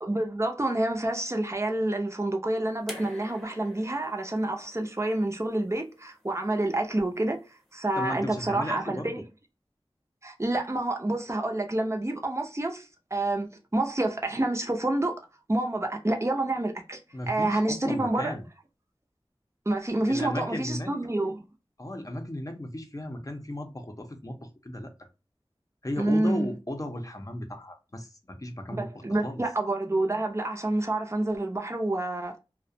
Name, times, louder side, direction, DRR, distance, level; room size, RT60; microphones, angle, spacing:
voice 1, 0.0-7.4 7.7-9.2 10.2-15.2 15.5-17.0 17.3-18.3 19.7-21.4 26.0-26.6 28.7-32.4, right 2 dB, 30° right, 0.6 m, -28 dB
sound 1, 2.9-6.0 7.2-7.3, left 1 dB, ahead, 0.8 m, -46 dB
voice 2, 8.0-9.1 17.1-18.5 20.1-20.9 21.8-24.4 24.6-24.9 25.8-28.9 29.2-29.4, left 1 dB, 35° left, 0.6 m, -35 dB
2.4 x 2.1 x 2.6 m
wide cardioid pair, 45°, 10 cm